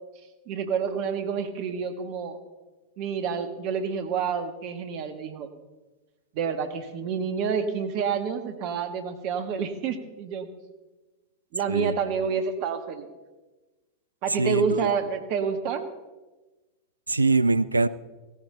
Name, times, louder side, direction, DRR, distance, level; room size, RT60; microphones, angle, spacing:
voice 1, 0.5-2.4 3.0-5.5 6.3-10.5 11.5-13.1 14.2-15.8, right 6 dB, 45° right, 8 dB, 1.5 m, -28 dB
voice 2, 14.4-14.9 17.1-17.9, right 3 dB, 80° right, 16 dB, 0.5 m, -23 dB
17.0 x 14.5 x 3.9 m, 1.2 s
figure-of-eight pair, 90°, 0 cm